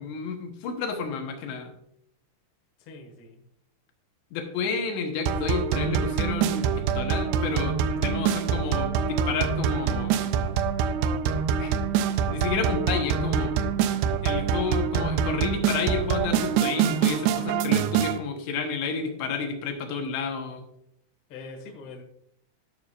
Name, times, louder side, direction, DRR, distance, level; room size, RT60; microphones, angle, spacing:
voice 1, 0.0-1.7 4.3-10.1 11.6-11.7 12.3-13.5 14.2-20.6, left 5 dB, 90° left, 4 dB, 3.3 m, -31 dB
voice 2, 2.8-3.4 21.3-22.0, left 3 dB, 55° left, 0 dB, 1.6 m, -43 dB
sound 1, 5.3-18.2, right 7 dB, 85° right, 2.3 m, -25 dB
11.5 x 6.5 x 2.4 m, 0.72 s
omnidirectional pair, 4.9 m